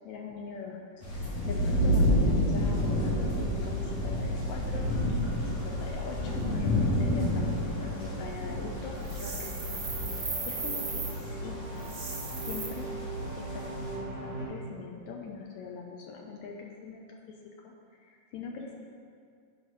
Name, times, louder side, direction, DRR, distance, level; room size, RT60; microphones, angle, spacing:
voice 1, 0.1-0.8 1.1-9.9 10.5-11.6 12.4-12.9 13.4-17.2 17.6-17.7 18.0-18.7, left 5 dB, 85° left, 0 dB, 1.6 m, -42 dB
sound 1, 1.0-13.9, left 1 dB, 55° left, 2.6 m, -30 dB
sound 2, 2.5-14.5, right 2 dB, 35° right, 2.5 m, -40 dB
sound 3, 9.0-11.1 11.8-12.7, right 3 dB, 75° right, 0.5 m, -36 dB
9.0 x 4.8 x 5.2 m, 2.3 s
omnidirectional pair, 3.9 m